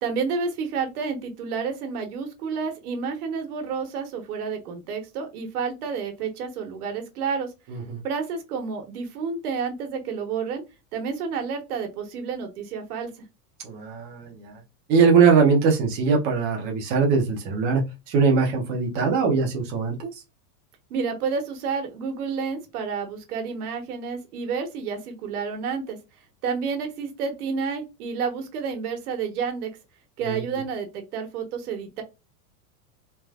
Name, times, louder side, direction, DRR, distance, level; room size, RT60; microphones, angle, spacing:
voice 1, 0.0-7.5 8.0-10.6 10.9-13.1 20.9-26.0 26.4-29.7 30.2-32.0, right 5 dB, 70° right, 1.3 m, -30 dB
voice 2, 7.7-8.0 13.6-14.6 14.9-20.1 30.2-30.4, right 5 dB, 20° right, 0.6 m, -21 dB
3.3 x 2.5 x 2.3 m
supercardioid pair, 175°, 47 cm